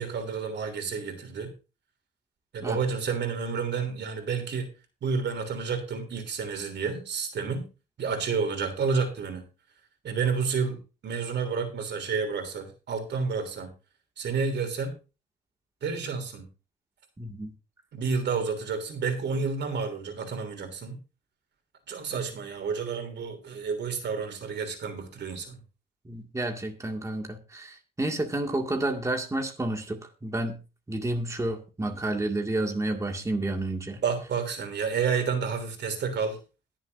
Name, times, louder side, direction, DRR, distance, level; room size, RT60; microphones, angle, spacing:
voice 1, 0.0-1.5 2.5-4.7 5.0-7.7 8.0-9.4 10.0-13.7 14.2-14.9 15.8-16.5 17.9-21.0 21.9-25.6 34.0-36.4, right 5 dB, 60° right, 5 dB, 3.2 m, -30 dB
voice 2, 17.2-17.5 26.1-30.6 30.9-34.0, right 1 dB, 15° right, 2 dB, 2.0 m, -30 dB
21.5 x 7.3 x 2.6 m, 0.32 s
cardioid pair, 90°, 20 cm